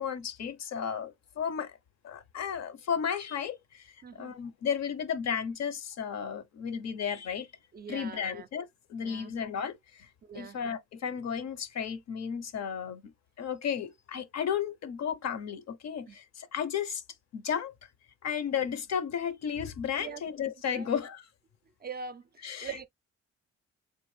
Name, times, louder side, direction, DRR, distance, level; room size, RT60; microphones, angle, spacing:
voice 1, 0.0-1.8 2.0-7.5 7.9-10.1 10.3-13.1 13.4-17.0 17.3-17.7 18.2-21.2 22.4-22.7, left 7 dB, 60° left, 0.6 m, -34 dB
voice 2, 4.0-4.3 7.7-8.5 9.0-9.3 10.2-10.6 16.1-16.2 20.0-20.2 20.7-20.9 21.8-22.9, right 6 dB, 35° right, 0.4 m, -43 dB
3.6 x 2.4 x 3.1 m
cardioid pair, 90°, 30 cm